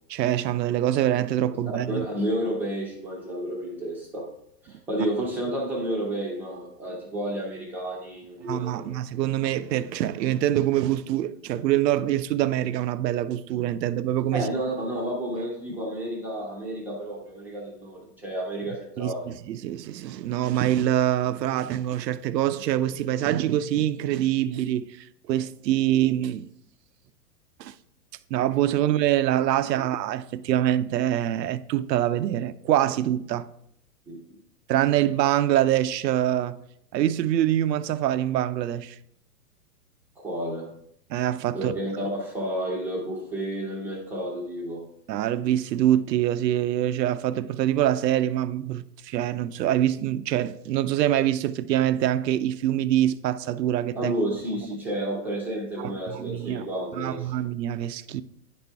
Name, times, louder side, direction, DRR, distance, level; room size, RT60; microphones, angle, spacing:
voice 1, 0.1-2.1 8.5-14.5 19.0-26.5 27.6-27.7 28.3-33.5 34.7-36.6 36.9-39.0 41.1-41.7 45.1-54.1 55.8-56.6 57.0-58.2, right 12 dB, 85° right, 0.6 m, -25 dB
voice 2, 1.9-4.3 4.6-8.9 14.3-19.3 34.1-34.2 40.2-40.7 41.5-44.8 53.9-57.3, right 1 dB, 5° right, 0.6 m, -31 dB
9.8 x 4.3 x 3.4 m
hypercardioid pair, 150°, 49 cm